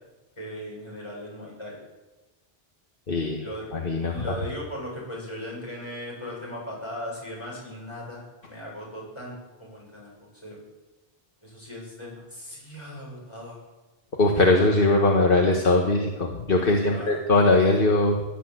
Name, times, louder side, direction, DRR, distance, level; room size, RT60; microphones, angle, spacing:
voice 1, 0.4-1.8 3.4-3.7 4.1-10.1 10.4-10.6 11.4-13.6 16.6-17.3, left 1 dB, 30° left, -4 dB, 7.1 m, -38 dB
voice 2, 3.1-3.4 3.7-4.3 14.2-18.2, left 2 dB, 60° left, 1 dB, 1.7 m, -21 dB
17.0 x 10.5 x 7.8 m, 1.1 s
omnidirectional pair, 1.0 m